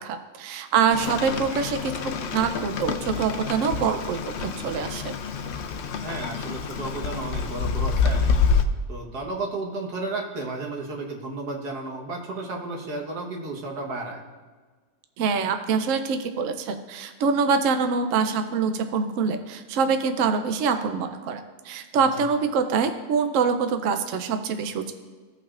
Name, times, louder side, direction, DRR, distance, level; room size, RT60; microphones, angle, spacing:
voice 1, 0.0-5.1 15.2-24.9, right 5 dB, 65° right, 7 dB, 0.9 m, -25 dB
Rain, 0.9-8.7, left 5 dB, 60° left, 0.7 m, -27 dB
voice 2, 6.0-8.3 8.9-14.2 22.1-22.3, right 2 dB, 80° right, 0 dB, 1.9 m, -33 dB
16.0 x 5.7 x 2.5 m, 1.4 s
omnidirectional pair, 1.6 m